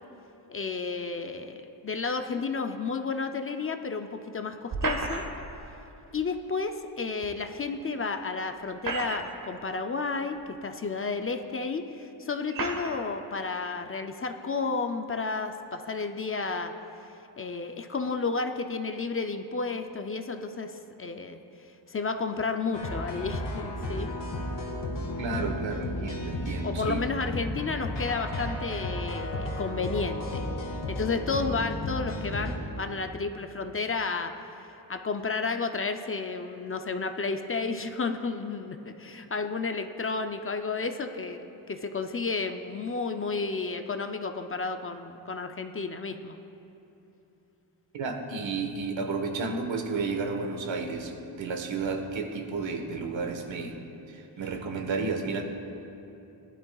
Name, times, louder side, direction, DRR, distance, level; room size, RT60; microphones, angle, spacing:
voice 1, 0.5-5.2 6.1-16.7 17.4-21.4 21.9-24.1 26.6-30.5 30.9-46.4, left 4 dB, 30° left, 6 dB, 0.4 m, -32 dB
sound 1, 4.7-5.5 7.2-7.3 8.6-9.5 10.4-10.5 11.4-11.5 12.5-13.0, right 3 dB, 45° right, 1.4 m, -32 dB
sound 2, 22.7-32.5, left 1 dB, 70° left, 1.7 m, -33 dB
voice 2, 25.2-27.0 47.9-53.8 54.1-55.4, right 4 dB, 85° right, 3 dB, 1.3 m, -32 dB
20.0 x 11.5 x 2.3 m, 2.9 s
wide cardioid pair, 165°, 45 cm